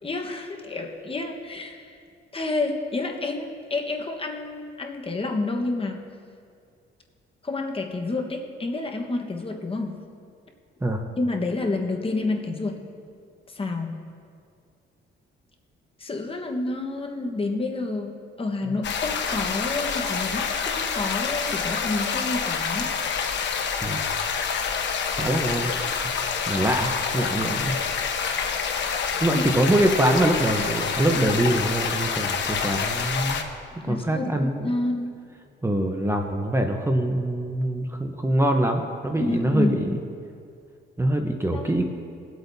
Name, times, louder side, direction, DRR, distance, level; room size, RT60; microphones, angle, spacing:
voice 1, 0.0-2.0 2.3-6.0 7.4-10.0 11.2-12.8 13.5-14.0 16.0-22.9 29.3-29.4 33.8-35.3 39.2-40.0 41.5-41.8, left 2 dB, 30° left, 2 dB, 1.3 m, -29 dB
sound 1, 18.8-33.4, left 6 dB, 65° left, 1.1 m, -27 dB
voice 2, 25.2-25.7 26.0-26.1 26.5-27.8 29.2-33.4 33.7-34.7 35.6-39.9 41.0-41.8, right 1 dB, 15° right, 3 dB, 0.9 m, -24 dB
21.0 x 8.1 x 2.8 m, 2.3 s
cardioid pair, 90°, 20 cm